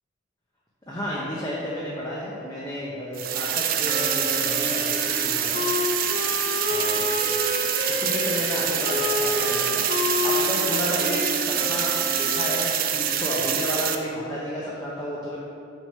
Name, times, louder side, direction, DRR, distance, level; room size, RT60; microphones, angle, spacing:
voice 1, 0.9-5.6 6.7-7.4 7.9-15.4, equal, 20° left, -6 dB, 0.7 m, -32 dB
sound 1, 3.1-14.0, right 9 dB, 45° right, 0.4 m, -25 dB
Wind instrument woodwind instrument, 3.8-12.7, left 4 dB, 50° left, 0.8 m, -30 dB
6.0 x 3.5 x 5.4 m, 2.6 s
head